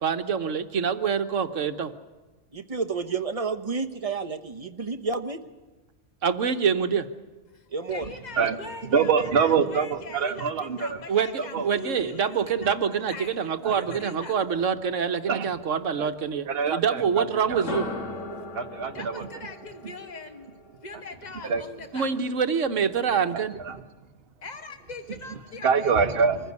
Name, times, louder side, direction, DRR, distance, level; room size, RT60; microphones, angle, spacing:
voice 1, 0.0-1.9 6.2-7.1 11.1-17.9 21.9-23.5, right 6 dB, 75° right, 9 dB, 1.4 m, -26 dB
voice 2, 2.5-5.4 7.7-8.0, right 4 dB, 30° right, 6 dB, 1.0 m, -30 dB
voice 3, 7.5-12.8 13.1-14.4 18.9-20.5 20.8-22.1 24.4-26.1, left 3 dB, 35° left, 6 dB, 1.7 m, -41 dB
voice 4, 8.8-11.0 11.4-11.7 12.6-12.7 13.6-13.8 15.3-15.5 16.0-16.1 16.5-17.6 18.5-19.3 21.4-21.6 23.3-23.8 25.6-26.5, right 6 dB, 50° right, 7 dB, 1.2 m, -25 dB
sound 1, 17.5-21.4, left 2 dB, 70° left, 2.7 m, -38 dB
24.5 x 15.0 x 9.6 m, 1.2 s
omnidirectional pair, 1.3 m